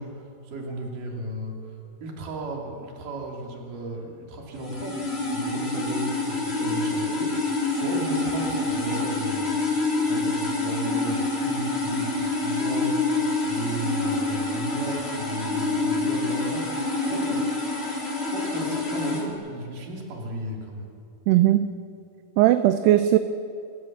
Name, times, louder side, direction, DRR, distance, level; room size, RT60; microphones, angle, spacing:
voice 1, 0.0-1.6 2.0-9.6 10.0-13.2 13.5-17.7 18.2-20.9, right 2 dB, 55° right, 0 dB, 4.2 m, -35 dB
sound 1, 4.6-19.3, left 3 dB, 20° left, 2.0 m, -27 dB
voice 2, 21.3-21.7 22.4-23.2, right 13 dB, 80° right, 10 dB, 2.6 m, -18 dB
27.0 x 15.5 x 7.4 m, 2.5 s
omnidirectional pair, 4.9 m